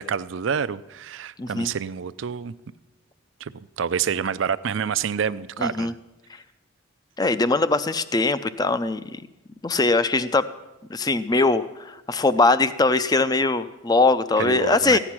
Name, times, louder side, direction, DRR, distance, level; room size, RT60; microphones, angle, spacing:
voice 1, 0.0-2.5 3.4-5.9 14.4-15.0, right 7 dB, 65° right, 16 dB, 0.4 m, -28 dB
voice 2, 1.4-1.7 5.6-5.9 6.3-6.4 7.2-9.2 9.6-10.4 10.9-15.0, left 3 dB, 20° left, 14 dB, 0.4 m, -21 dB
15.0 x 10.0 x 6.0 m, 1.0 s
head